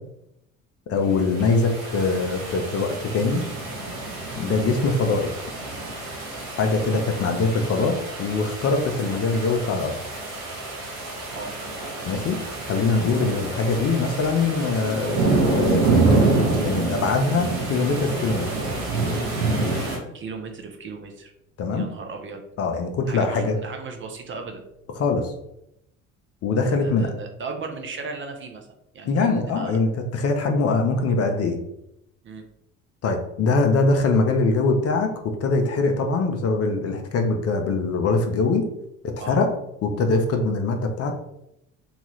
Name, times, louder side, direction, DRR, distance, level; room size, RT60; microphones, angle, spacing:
voice 1, 0.9-3.4 4.4-5.3 6.6-10.0 12.1-12.4 12.6-15.2 15.5-16.1 16.3-18.4 21.6-21.9 22.6-23.6 25.0-25.3 26.4-27.1 29.0-31.6 33.0-35.1 35.4-38.7 39.3-39.5 39.8-41.1, left 3 dB, 40° left, 4 dB, 0.5 m, -22 dB
sound 1, 1.1-20.0, right 3 dB, 85° right, 0.9 m, -27 dB
voice 2, 20.1-21.3 21.7-22.4 23.1-24.6 26.6-28.7 28.9-29.8 32.2-32.4 39.2-39.4, right 4 dB, 30° right, 4 dB, 0.5 m, -36 dB
2.9 x 2.3 x 3.0 m, 0.81 s
hypercardioid pair, 65°, 38 cm